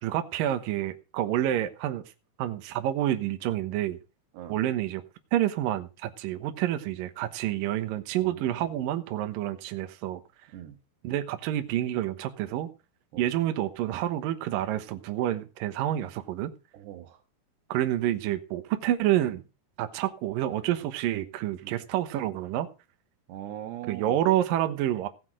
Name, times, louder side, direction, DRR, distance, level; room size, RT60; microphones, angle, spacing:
voice 1, 0.0-2.0 2.4-4.0 4.5-5.0 5.3-10.2 11.0-12.7 13.2-16.5 17.7-19.4 19.8-22.7 23.9-25.1, right 12 dB, 70° right, 2.6 m, -28 dB
voice 2, 8.2-8.6 10.5-10.8 13.1-13.3 16.7-17.2 21.6-21.8 23.3-24.2, right 12 dB, 90° right, 3.6 m, -41 dB
17.0 x 6.0 x 6.0 m
omnidirectional pair, 4.7 m